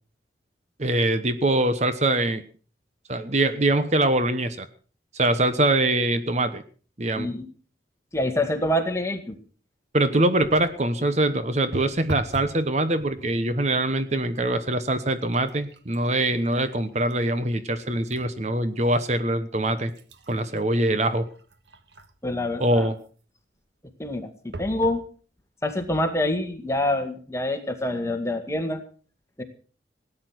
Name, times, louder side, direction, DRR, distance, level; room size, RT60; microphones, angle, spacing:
voice 1, 0.8-2.4 3.1-4.7 5.1-6.6 7.0-7.3 9.9-19.9 20.3-21.3 22.6-23.0, right 1 dB, 40° right, 11 dB, 1.0 m, -23 dB
voice 2, 7.2-7.5 8.1-9.4 22.2-22.9 24.0-25.0 25.6-28.8 29.4-29.5, left 1 dB, 15° left, 5 dB, 2.1 m, -26 dB
sound 1, 10.4-10.8 11.7-12.6 13.0-13.5 14.2-14.4 14.7-18.3 18.8-18.9 19.6-22.3 24.5-25.0 25.7-25.8 26.1-26.2, right 2 dB, 75° right, 1.6 m, -41 dB
18.0 x 10.0 x 6.1 m, 0.41 s
head